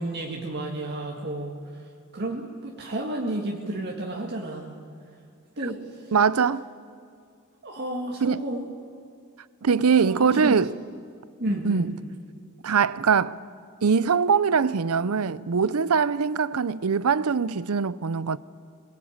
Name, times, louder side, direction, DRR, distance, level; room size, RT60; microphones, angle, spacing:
voice 1, 0.0-1.8 2.1-4.7 5.6-6.1 7.6-8.7 10.0-10.5 11.4-11.9, right 1 dB, 50° right, 1.9 m, -32 dB
voice 2, 6.1-6.7 8.2-8.4 9.6-10.7 11.6-11.9 12.6-13.4 13.8-18.4, right 6 dB, 75° right, 0.6 m, -22 dB
22.0 x 20.5 x 8.7 m
head